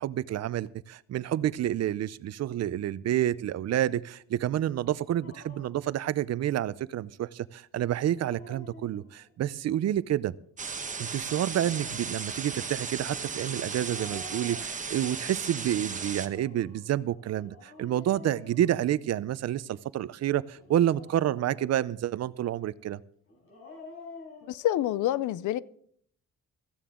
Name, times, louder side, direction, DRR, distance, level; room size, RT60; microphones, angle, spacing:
voice 1, 0.0-10.3 11.0-23.0, right 12 dB, 60° right, 18 dB, 0.6 m, -29 dB
Dog, 5.2-5.8 7.9-9.3 11.4-12.2 13.7-15.2 16.1-19.3 20.5-21.9 23.3-24.6, left 2 dB, 50° left, 5.9 m, -49 dB
sound 1, 10.6-16.3, right 5 dB, 25° right, 1.1 m, -36 dB
voice 2, 24.4-25.6, left 13 dB, 85° left, 20 dB, 0.6 m, -27 dB
16.0 x 14.5 x 3.7 m, 0.62 s
cardioid pair, 140°, 30 cm